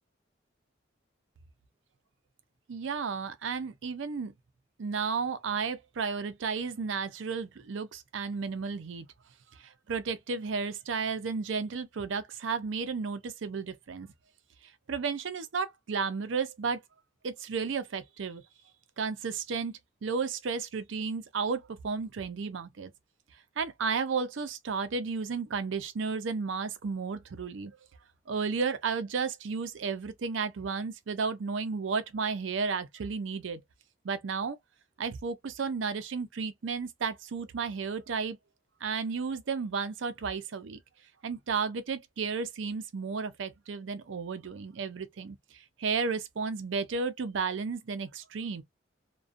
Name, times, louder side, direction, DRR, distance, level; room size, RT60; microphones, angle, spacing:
voice 1, 2.7-4.3 4.8-9.1 9.6-14.1 14.9-16.8 17.2-18.4 19.0-22.9 23.6-27.8 28.3-33.6 34.0-34.6 35.0-38.4 38.8-40.8 41.2-48.6, right 5 dB, 80° right, 0.5 m, -33 dB
2.4 x 2.2 x 2.4 m
head